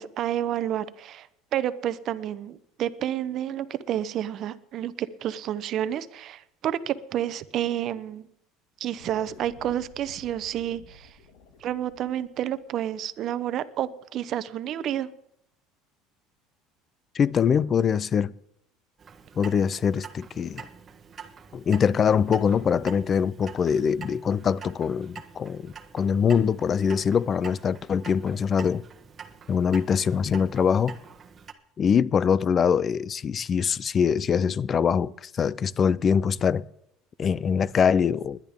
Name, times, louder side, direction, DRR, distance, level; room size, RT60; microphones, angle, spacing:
voice 1, 0.0-8.3 8.8-11.1 11.6-15.1, right 11 dB, 50° right, 0.8 m, -30 dB
sound 1, 9.0-13.6, left 3 dB, 80° left, 2.0 m, -53 dB
voice 2, 17.1-18.3 19.4-20.7 21.5-28.8 29.5-31.0 31.8-36.6 37.2-38.4, left 7 dB, 30° left, 0.4 m, -23 dB
Clock, 19.0-31.5, right 6 dB, 30° right, 1.2 m, -46 dB
20.5 x 10.5 x 3.6 m
supercardioid pair, 125°, 0 cm